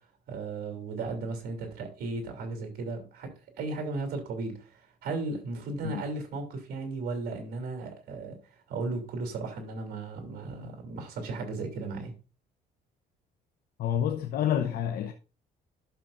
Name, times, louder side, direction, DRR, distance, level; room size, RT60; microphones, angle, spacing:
voice 1, 0.3-3.3 3.6-8.3 8.7-12.1, right 3 dB, 70° right, 3.0 m, -35 dB
voice 2, 13.8-15.1, left 9 dB, 65° left, 0.8 m, -28 dB
11.5 x 6.7 x 2.6 m
cardioid pair, 110°, 17 cm